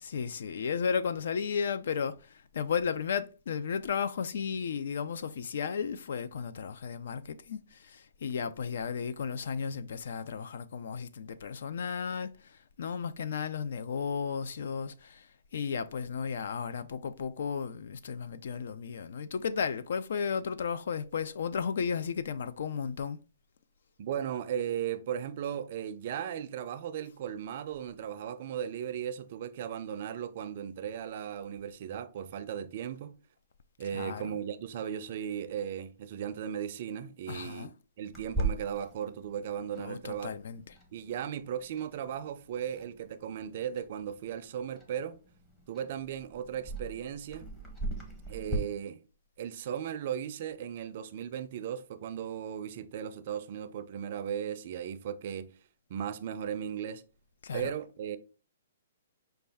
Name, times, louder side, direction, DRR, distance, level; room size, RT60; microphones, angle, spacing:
voice 1, 0.0-15.3 15.5-23.2 33.9-34.2 37.3-37.7 39.8-40.6 57.4-57.7, left 6 dB, 65° left, 0.3 m, -34 dB
voice 2, 24.0-33.2 33.8-37.7 38.0-40.4 40.9-45.2 45.7-47.5 48.3-49.0 49.4-55.5 55.9-57.0 57.5-58.2, right 9 dB, 40° right, 0.4 m, -36 dB
Clock, 38.1-48.6, right 2 dB, 10° left, 0.7 m, -40 dB
5.2 x 2.3 x 3.4 m
hypercardioid pair, 165°, 0 cm